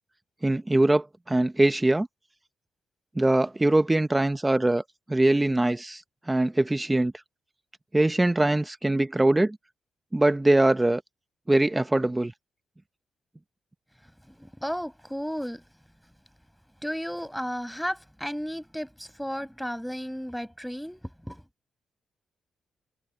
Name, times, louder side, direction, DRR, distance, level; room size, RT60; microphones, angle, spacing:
voice 1, 0.4-2.1 3.2-4.8 5.1-6.0 6.3-7.1 7.9-9.6 10.1-11.0 11.5-12.3, right 2 dB, 15° right, 1.1 m, -22 dB
voice 2, 14.3-15.6 16.8-21.4, equal, ahead, 6.8 m, -34 dB
cardioid pair, 85°, 0 cm